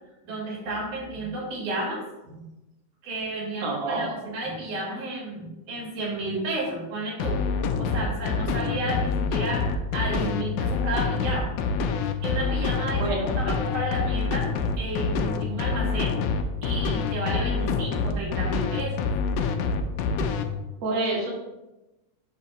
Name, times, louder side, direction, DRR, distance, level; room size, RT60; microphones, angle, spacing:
voice 1, 0.2-2.4 3.0-7.4 7.8-11.5 12.2-19.1, right 1 dB, 90° right, -3 dB, 3.4 m, -32 dB
voice 2, 3.6-4.0 8.8-9.0 13.0-13.3 20.8-21.3, right 2 dB, 55° right, -4 dB, 2.4 m, -27 dB
sound 1, 7.2-20.4, left 5 dB, 90° left, 1.4 m, -26 dB
8.0 x 2.8 x 5.5 m, 1.0 s
omnidirectional pair, 3.5 m